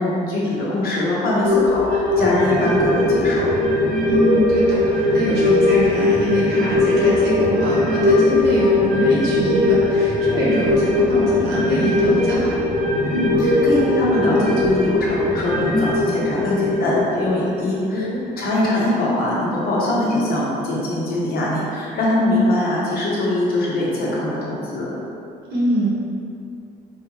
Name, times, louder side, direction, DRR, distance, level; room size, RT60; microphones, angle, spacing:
voice 1, 0.0-3.5 13.1-18.1 18.4-24.9, left 1 dB, 65° left, -6 dB, 1.1 m, -22 dB
sound 1, 1.4-18.2 18.6-18.7, left 2 dB, 45° right, 0.7 m, -19 dB
voice 2, 4.1-12.5 15.7-15.9 17.9-18.2 25.5-25.9, equal, 80° right, -7 dB, 1.3 m, -24 dB
4.5 x 2.4 x 3.2 m, 2.5 s
cardioid pair, 110°, 17 cm